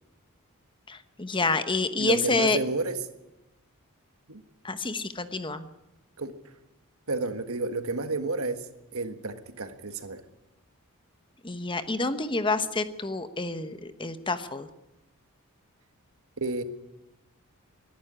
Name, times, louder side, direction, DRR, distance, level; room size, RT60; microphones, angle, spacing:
voice 1, 0.9-2.6 4.6-5.7 11.4-14.7, left 3 dB, 20° left, 11 dB, 1.0 m, -28 dB
voice 2, 2.0-3.0 4.3-4.4 6.2-6.3 7.1-8.6 8.9-10.2 16.4-16.6, right 3 dB, 65° right, 9 dB, 1.6 m, -30 dB
22.5 x 11.5 x 9.8 m, 0.96 s
head